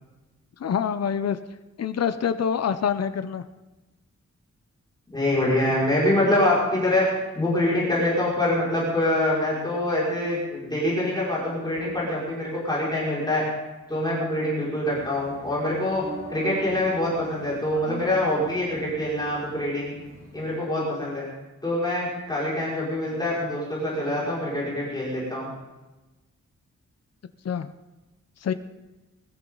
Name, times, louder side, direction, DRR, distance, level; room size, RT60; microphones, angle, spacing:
voice 1, 0.6-1.4 1.8-3.4 27.4-27.7 28.4-28.5, left 7 dB, 60° left, 10 dB, 0.7 m, -26 dB
voice 2, 5.1-7.1 7.3-13.4 13.9-20.0 20.3-21.3 21.6-25.5, left 1 dB, 15° left, -7 dB, 5.5 m, -25 dB
sound 1, 14.9-20.5, right 2 dB, 55° right, 5.9 m, -42 dB
21.5 x 13.5 x 3.9 m, 1.1 s
wide cardioid pair, 170°, 29 cm